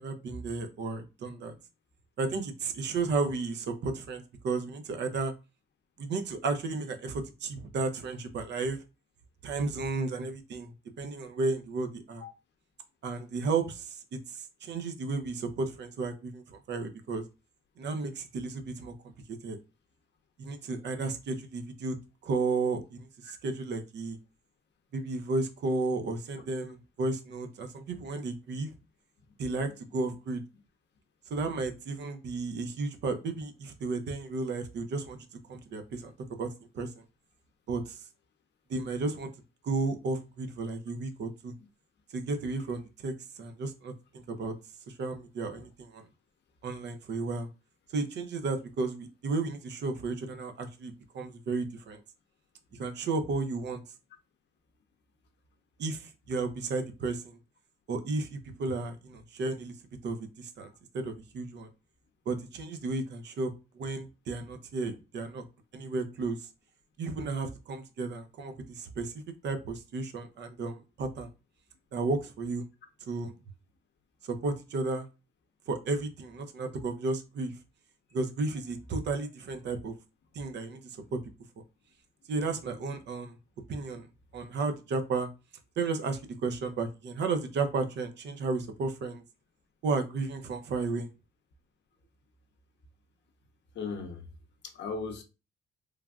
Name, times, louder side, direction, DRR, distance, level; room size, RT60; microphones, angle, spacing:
voice 1, 0.0-1.5 2.2-5.3 6.0-8.8 9.4-10.7 11.0-12.2 13.0-14.0 14.3-17.2 17.8-18.9 19.4-19.6 20.4-22.0 22.2-24.2 24.9-28.7 29.4-30.4 31.3-35.2 35.5-36.1 36.4-36.5 36.7-37.0 37.7-38.0 38.7-39.3 39.6-41.5 42.1-43.1 43.4-44.5 45.0-46.0 46.6-47.5 47.9-52.0 52.8-53.8 55.8-57.3 57.9-59.7 60.0-61.7 62.3-65.4 65.7-66.4 67.0-71.3 71.9-72.6 73.1-73.3 74.2-75.1 75.7-77.5 78.1-79.9 80.3-81.2 82.3-83.3 83.7-84.1 84.3-85.3 85.8-89.2 89.8-91.1, right 3 dB, 60° right, 0.6 m, -33 dB
voice 2, 93.7-94.3 94.6-95.2, left 4 dB, 65° left, 0.6 m, -37 dB
3.2 x 2.3 x 2.3 m
cardioid pair, 90°, 20 cm